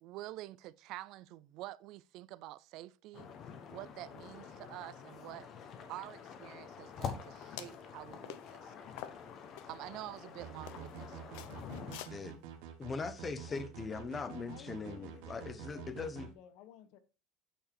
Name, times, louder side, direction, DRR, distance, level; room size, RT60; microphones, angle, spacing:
voice 1, 0.0-3.3 3.7-5.5 5.9-9.1 9.7-11.4 11.8-12.0, right 16 dB, 55° right, 0.4 m, -48 dB
sound 1, 3.1-12.0, left 7 dB, 40° left, 1.3 m, -47 dB
sound 2, 7.4-7.8 8.2-8.5 9.0-9.7 10.2-10.3 10.7-11.0 11.3-12.1, left 13 dB, 80° left, 0.8 m, -47 dB
sound 3, 10.4-16.3, right 9 dB, 75° right, 1.4 m, -48 dB
voice 2, 12.0-12.4 12.8-16.3, left 4 dB, 20° left, 0.9 m, -40 dB
voice 3, 14.2-16.0 16.4-17.0, left 10 dB, 60° left, 1.2 m, -55 dB
8.9 x 4.7 x 4.7 m
cardioid pair, 150°, 0 cm